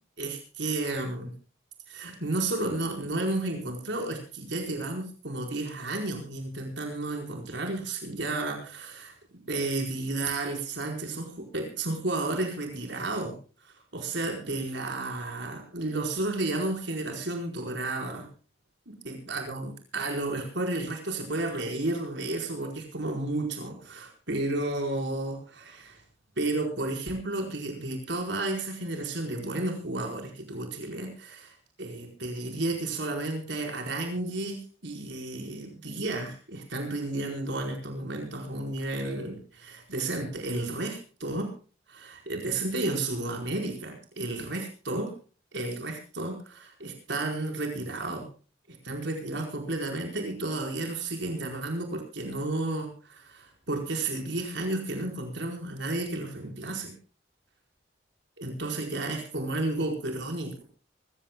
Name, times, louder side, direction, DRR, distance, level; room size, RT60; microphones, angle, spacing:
voice 1, 0.2-1.3 1.9-9.1 9.5-13.3 13.6-18.3 18.9-26.0 26.4-41.5 41.9-45.1 45.5-48.3 48.7-56.9 58.4-60.6, right 2 dB, 70° right, 2 dB, 4.7 m, -32 dB
24.5 x 15.5 x 2.3 m, 0.36 s
head